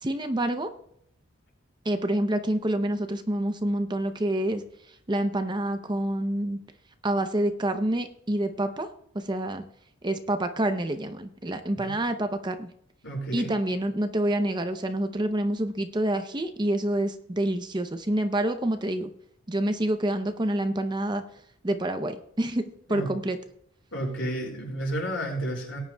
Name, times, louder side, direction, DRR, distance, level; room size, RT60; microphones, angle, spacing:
voice 1, 0.0-0.7 1.8-4.6 5.1-6.6 7.0-8.9 9.1-9.6 10.0-12.7 13.3-19.1 19.5-21.2 21.6-23.4, right 1 dB, 20° right, 8 dB, 0.6 m, -27 dB
voice 2, 13.0-13.5 22.9-23.1 23.9-25.8, right 1 dB, 65° left, -1 dB, 5.0 m, -31 dB
18.5 x 9.8 x 2.3 m, 0.70 s
head